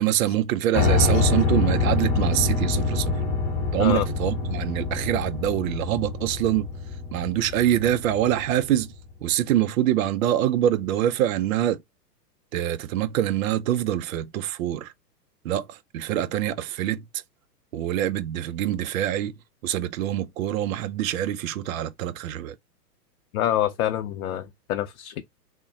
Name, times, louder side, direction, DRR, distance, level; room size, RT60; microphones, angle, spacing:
voice 1, 0.0-3.2 3.7-6.7 7.1-8.9 9.2-11.8 12.5-14.9 15.4-17.2 17.7-19.3 19.6-22.6, right 12 dB, 55° right, 0.5 m, -25 dB
Piano, 0.7-8.7, left 4 dB, 20° left, 0.7 m, -25 dB
voice 2, 23.3-25.2, left 12 dB, 60° left, 0.6 m, -26 dB
3.5 x 2.1 x 3.9 m
hypercardioid pair, 130°, 50 cm